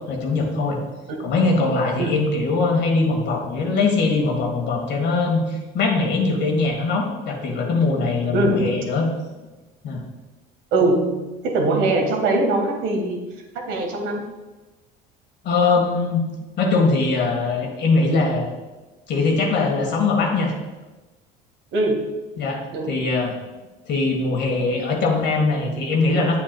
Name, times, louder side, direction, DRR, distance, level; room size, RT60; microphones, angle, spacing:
voice 1, 0.1-0.8 1.2-9.1 9.8-10.0 15.4-16.2 16.6-18.5 19.1-20.5 22.4-23.3 23.9-26.4, left 3 dB, 55° left, 1 dB, 1.5 m, -21 dB
voice 2, 8.3-8.8 10.7-13.2 13.7-14.2 21.7-22.1 22.7-23.0, right 2 dB, 65° right, 3 dB, 1.5 m, -22 dB
8.4 x 7.8 x 2.2 m, 1.1 s
supercardioid pair, 100°, 21 cm